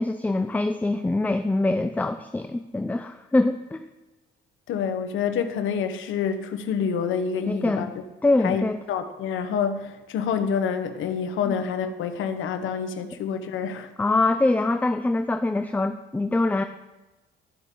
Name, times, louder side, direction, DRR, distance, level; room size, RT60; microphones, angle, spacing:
voice 1, 0.0-3.8 7.5-7.9 8.2-8.8 11.5-11.6 14.0-16.6, left 2 dB, 10° left, 9 dB, 0.4 m, -24 dB
voice 2, 4.7-7.9 8.4-13.9, left 7 dB, 80° left, 9 dB, 0.9 m, -27 dB
11.5 x 8.2 x 3.8 m, 1.1 s
cardioid pair, 90°, 20 cm